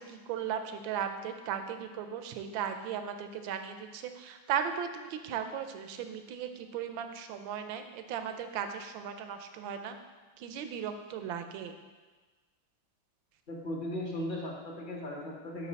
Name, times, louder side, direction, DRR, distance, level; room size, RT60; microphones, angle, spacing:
voice 1, 0.0-10.0 10.4-11.7, right 8 dB, 80° right, 8 dB, 1.3 m, -37 dB
voice 2, 13.5-15.7, left 1 dB, 30° left, -2 dB, 1.0 m, -37 dB
7.3 x 6.1 x 4.0 m, 1.3 s
omnidirectional pair, 2.2 m